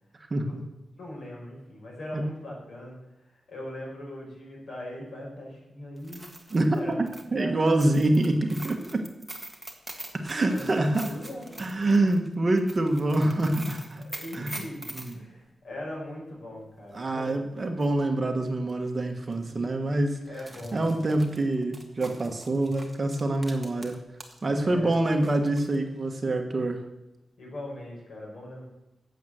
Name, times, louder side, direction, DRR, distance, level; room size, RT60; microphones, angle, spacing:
voice 1, 0.3-0.6 2.1-2.2 6.5-6.8 7.3-9.0 10.2-11.1 11.6-14.0 14.3-14.6 14.9-15.1 16.9-20.2 20.7-24.0 24.4-26.8, right 2 dB, 30° right, 4 dB, 1.3 m, -26 dB
voice 2, 1.0-7.0 7.3-7.9 10.5-10.8 11.1-11.6 14.0-17.3 20.3-21.2 24.6-25.0 27.4-28.6, left 1 dB, 65° left, -2 dB, 5.8 m, -40 dB
sound 1, 6.0-15.1 17.3-17.4 17.8-17.9 18.7-18.9 19.2-19.3 20.2-24.4 24.7-25.8, right 1 dB, ahead, 1.7 m, -44 dB
12.0 x 7.9 x 7.8 m, 0.96 s
wide cardioid pair, 150°, 0 cm